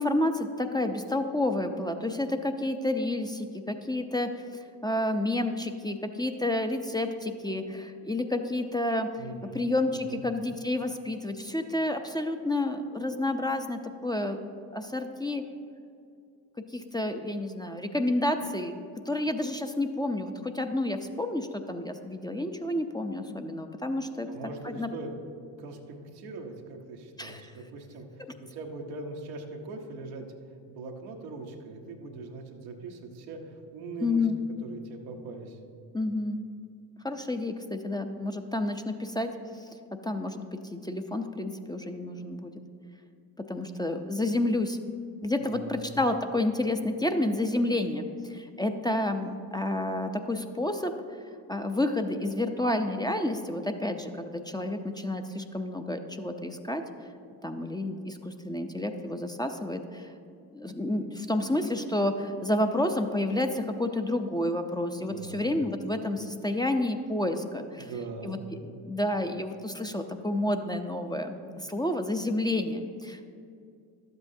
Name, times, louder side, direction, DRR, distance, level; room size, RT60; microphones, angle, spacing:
voice 1, 0.0-4.4 4.8-9.1 9.5-14.4 14.7-15.4 16.7-18.7 19.1-24.3 24.6-24.9 27.2-27.4 28.2-28.3 34.0-34.4 35.9-36.4 37.0-42.5 43.4-44.8 45.2-50.9 51.5-56.8 57.4-60.1 60.5-67.9 68.2-73.2, left 1 dB, 10° left, 5 dB, 0.5 m, -30 dB
voice 2, 9.2-10.3 24.3-25.1 25.6-30.3 30.7-34.2 34.6-35.6 45.4-46.0 65.0-65.6 67.8-68.4, right 3 dB, 90° right, 2 dB, 1.0 m, -41 dB
12.0 x 8.1 x 2.7 m, 2.4 s
hypercardioid pair, 50°, 49 cm